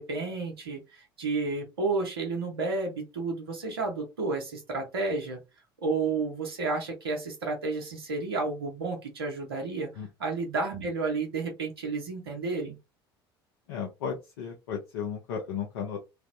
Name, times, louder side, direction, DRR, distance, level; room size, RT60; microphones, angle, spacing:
voice 1, 0.0-5.4 5.8-9.9 10.2-12.8, right 3 dB, 85° right, 2 dB, 0.8 m, -31 dB
voice 2, 13.7-16.0, left 7 dB, 75° left, 0 dB, 0.6 m, -34 dB
3.2 x 2.0 x 2.5 m, 0.24 s
hypercardioid pair, 70°, 12 cm